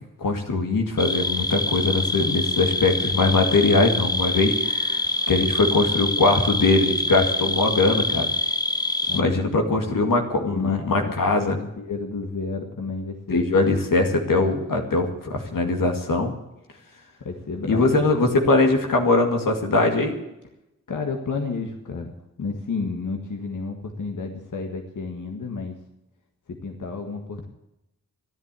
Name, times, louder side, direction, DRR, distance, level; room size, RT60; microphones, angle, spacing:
voice 1, 0.2-8.3 9.1-11.6 13.3-16.3 17.7-20.2, left 3 dB, 90° left, 3 dB, 2.3 m, -21 dB
sound 1, 1.0-9.2, left 2 dB, 10° left, 0.7 m, -25 dB
voice 2, 9.1-10.0 10.5-13.4 17.2-18.0 20.9-25.8 26.5-27.5, left 4 dB, 70° left, 3 dB, 1.8 m, -31 dB
12.5 x 11.0 x 8.4 m, 0.89 s
cardioid pair, 65°, 32 cm